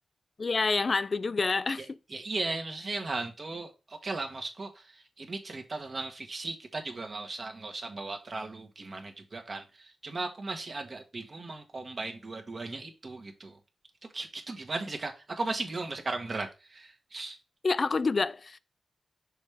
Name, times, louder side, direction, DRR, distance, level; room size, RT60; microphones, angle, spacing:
voice 1, 0.4-1.9 17.6-18.6, left 4 dB, 50° left, 0.3 m, -27 dB
voice 2, 2.1-13.6 14.1-17.4, right 3 dB, 50° right, 1.2 m, -37 dB
6.2 x 3.3 x 4.8 m
cardioid pair, 75°, 0 cm